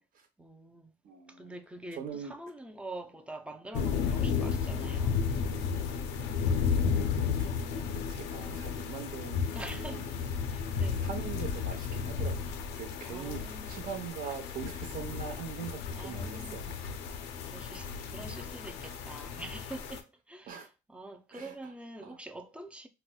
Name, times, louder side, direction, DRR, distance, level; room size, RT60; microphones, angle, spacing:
voice 1, 0.4-0.9 1.3-5.3 9.5-10.2 10.5-11.1 13.0-13.9 15.9-16.7 17.0-22.9, right 2 dB, 5° right, 0.4 m, -45 dB
voice 2, 1.0-1.6 1.9-2.3 7.1-10.1 11.0-16.7 18.8-18.9 20.5-20.7 21.3-21.5 22.0-22.2, right 7 dB, 55° right, 0.8 m, -42 dB
sound 1, 3.7-20.0, left 6 dB, 85° left, 0.5 m, -33 dB
4.0 x 2.1 x 2.3 m
cardioid pair, 110°, 17 cm